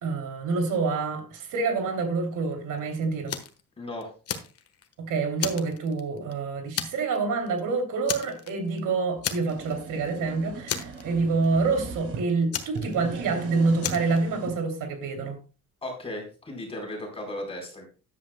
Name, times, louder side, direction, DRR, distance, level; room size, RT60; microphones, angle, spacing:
voice 1, 0.0-3.4 5.0-15.4, right 4 dB, 70° right, 3.0 m, -27 dB
Fire, 3.3-3.6 4.0-4.9 5.4-6.3 6.8-7.2 7.5-7.6 8.1-8.8 9.2-9.8 10.1-10.2 10.7-11.5 12.5-13.3 13.8-14.2, left 8 dB, 50° left, 1.4 m, -33 dB
voice 2, 3.8-4.1 15.8-17.9, left 1 dB, 20° left, 4.2 m, -36 dB
sound 1, 9.2-12.2 12.7-14.6, right 4 dB, 45° right, 2.4 m, -39 dB
13.5 x 10.5 x 2.2 m
cardioid pair, 165°, 32 cm